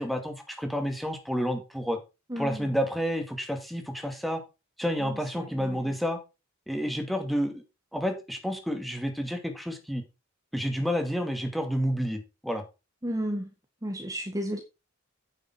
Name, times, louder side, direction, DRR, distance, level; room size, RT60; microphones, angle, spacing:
voice 1, 0.0-2.0 2.4-4.4 4.8-6.2 6.7-7.6 7.9-10.0 10.5-12.6, equal, ahead, 5 dB, 2.3 m, -30 dB
voice 2, 2.3-2.7 5.0-5.8 13.0-13.5 13.8-14.6, equal, 15° right, 2 dB, 1.7 m, -33 dB
9.4 x 7.4 x 4.7 m, 0.27 s
head